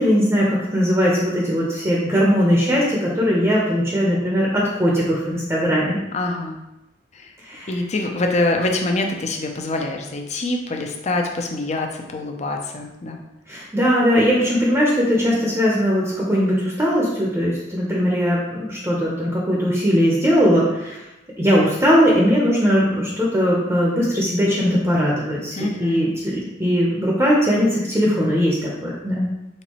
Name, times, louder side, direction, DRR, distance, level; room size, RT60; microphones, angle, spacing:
voice 1, 0.0-6.0 7.4-7.7 13.5-21.0 21.4-29.3, equal, 15° right, -4 dB, 0.7 m, -19 dB
voice 2, 6.1-6.6 7.1-7.3 7.7-13.2 25.6-26.0, left 2 dB, 40° left, 3 dB, 0.6 m, -25 dB
4.4 x 3.9 x 3.0 m, 0.93 s
head